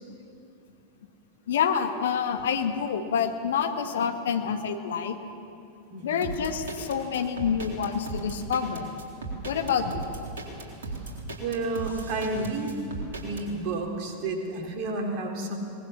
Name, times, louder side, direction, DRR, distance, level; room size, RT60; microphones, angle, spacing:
voice 1, 1.5-5.2 6.0-8.9 9.4-10.0 11.3-11.4 12.4-12.5, left 7 dB, 60° left, 7 dB, 1.6 m, -27 dB
voice 2, 5.9-6.2 11.4-12.7 13.2-15.6, right 2 dB, 45° right, 2 dB, 3.7 m, -31 dB
sound 1, 6.2-13.4, right 3 dB, 60° right, 3.9 m, -37 dB
23.0 x 20.0 x 7.0 m, 2.7 s
figure-of-eight pair, 90°, 0 cm